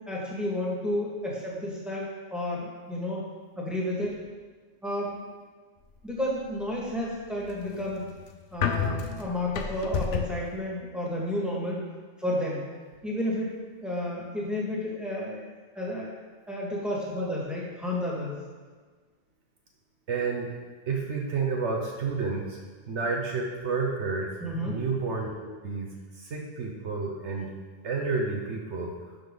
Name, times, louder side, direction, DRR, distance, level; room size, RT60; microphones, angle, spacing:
voice 1, 0.1-3.3 3.6-4.2 4.8-5.3 6.0-8.1 8.5-11.9 12.2-12.6 13.0-13.5 13.8-15.5 15.8-16.2 16.5-18.4 24.4-24.8, left 1 dB, ahead, -5 dB, 1.9 m, -31 dB
sound 1, 7.3-10.5, left 7 dB, 70° left, 1.0 m, -30 dB
voice 2, 20.1-20.5 20.9-22.6 22.9-24.3 24.7-25.9 26.1-27.5 27.8-28.9, right 4 dB, 65° right, 0 dB, 1.2 m, -30 dB
11.5 x 5.3 x 3.9 m, 1.4 s
omnidirectional pair, 1.3 m